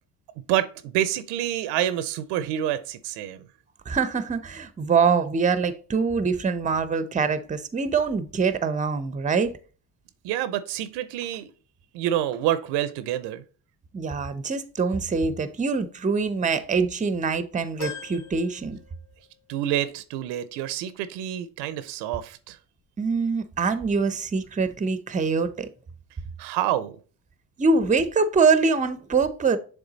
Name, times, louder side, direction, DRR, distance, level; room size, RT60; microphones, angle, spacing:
voice 1, 0.5-3.4 10.2-11.5 11.9-13.4 19.5-22.6 26.4-27.0, right 12 dB, 85° right, 0.7 m, -27 dB
voice 2, 3.9-9.5 13.9-18.8 23.0-25.7 27.6-29.6, right 4 dB, 20° right, 0.6 m, -24 dB
sound 1, 17.8-19.4 19.9-20.0 21.2-21.3, left 7 dB, 50° left, 1.9 m, -40 dB
7.0 x 3.6 x 3.9 m
supercardioid pair, 75°, 41 cm